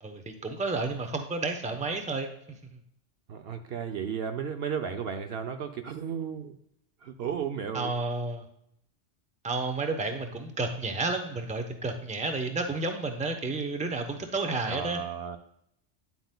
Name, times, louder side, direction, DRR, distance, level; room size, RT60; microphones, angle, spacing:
voice 1, 0.0-2.3 7.7-8.4 9.4-15.0, right 3 dB, 10° right, 6 dB, 0.7 m, -31 dB
voice 2, 3.3-6.6 7.0-7.9 14.7-15.4, right 7 dB, 65° right, 7 dB, 0.8 m, -34 dB
10.0 x 7.8 x 2.2 m, 0.74 s
omnidirectional pair, 1.2 m